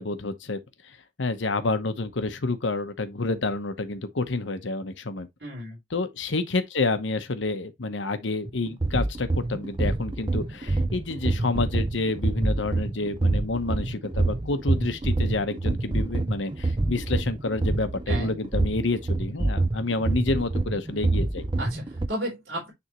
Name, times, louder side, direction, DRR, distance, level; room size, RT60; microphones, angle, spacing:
voice 1, 0.0-5.3 5.9-21.5, left 3 dB, 80° left, 1.0 m, -29 dB
voice 2, 5.4-5.8 18.1-18.3 21.6-22.7, equal, 65° right, 3.6 m, -33 dB
sound 1, 8.5-22.1, right 2 dB, 25° right, 0.5 m, -26 dB
9.6 x 3.5 x 3.0 m
head